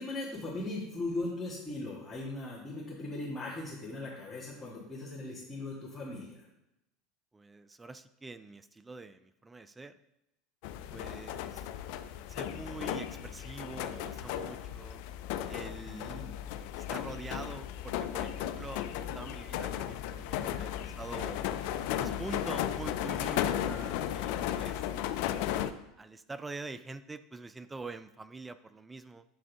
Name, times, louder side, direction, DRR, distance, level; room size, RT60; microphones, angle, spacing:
voice 1, 0.0-6.4 15.9-16.3 23.6-23.9, left 2 dB, 5° left, -9 dB, 1.9 m, -39 dB
voice 2, 7.3-10.0 10.9-11.7 12.3-15.0 15.5-16.4 16.7-18.9 19.1-21.4 22.0-23.6 24.1-24.9 26.0-29.2, right 3 dB, 15° right, 12 dB, 0.3 m, -45 dB
sound 1, 10.6-25.7, left 11 dB, 65° left, 0.3 m, -35 dB
7.9 x 3.5 x 3.5 m, 0.88 s
hypercardioid pair, 80°, 0 cm